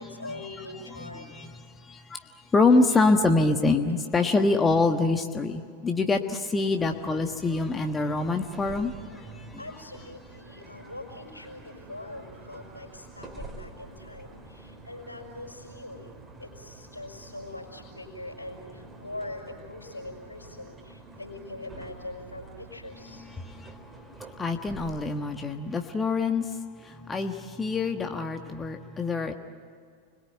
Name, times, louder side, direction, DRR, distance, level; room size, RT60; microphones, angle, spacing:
voice 1, 0.0-1.4 9.6-16.1 16.4-23.3, left 2 dB, 85° left, 2 dB, 5.3 m, -42 dB
voice 2, 1.1-1.5 1.9-2.2 2.5-8.9 24.4-26.4 27.1-29.3, left 3 dB, 15° left, 5 dB, 1.4 m, -25 dB
sound 1, 6.8-25.6, right 3 dB, 15° right, 4.4 m, -47 dB
30.0 x 22.0 x 9.1 m, 2.1 s
figure-of-eight pair, 90°, 0 cm